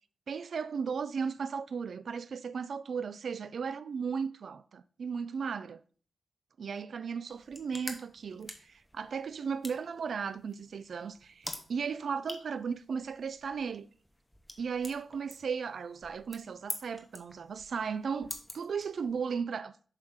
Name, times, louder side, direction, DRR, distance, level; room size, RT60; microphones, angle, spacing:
voice 1, 0.3-5.8 6.6-13.9 14.6-19.7, right 6 dB, 70° right, 0.4 m, -36 dB
sound 1, 7.3-19.4, equal, 5° left, 1.2 m, -47 dB
7.3 x 3.8 x 6.4 m
wide cardioid pair, 90°, 0 cm